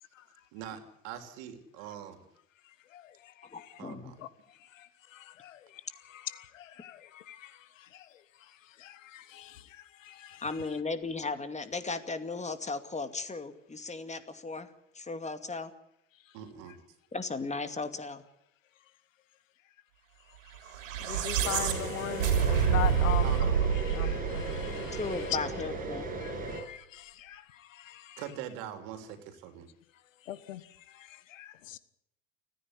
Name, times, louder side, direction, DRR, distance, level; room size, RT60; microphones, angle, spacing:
voice 1, 0.5-2.2 3.8-4.2 16.3-16.8 23.2-23.6 24.0-24.1 28.2-29.7, right 9 dB, 70° right, 3.6 m, -42 dB
voice 2, 2.9-3.7 4.2-4.3 4.7-8.2 8.7-10.4 21.0-23.5 23.8-25.4 26.2-28.2 30.2-31.8, left 12 dB, 85° left, 1.4 m, -41 dB
voice 3, 3.5-4.1 10.4-14.7 14.9-15.7 17.1-18.2 24.9-26.1, left 3 dB, 20° left, 2.4 m, -36 dB
sound 1, 20.7-25.1, right 8 dB, 85° right, 3.3 m, -28 dB
sound 2, 21.4-26.6, right 2 dB, 20° right, 7.8 m, -37 dB
29.5 x 10.5 x 9.8 m
hypercardioid pair, 80°, 38 cm